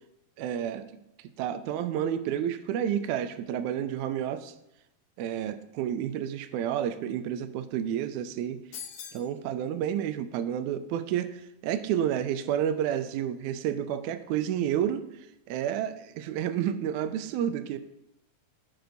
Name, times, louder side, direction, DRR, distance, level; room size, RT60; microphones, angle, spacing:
voice 1, 0.4-0.9 1.4-4.5 5.2-8.6 9.1-15.1 15.5-17.8, right 10 dB, 80° right, 10 dB, 1.8 m, -30 dB
sound 1, 8.7-9.3, left 8 dB, 80° left, 2.2 m, -41 dB
16.0 x 5.6 x 2.7 m, 0.87 s
omnidirectional pair, 3.8 m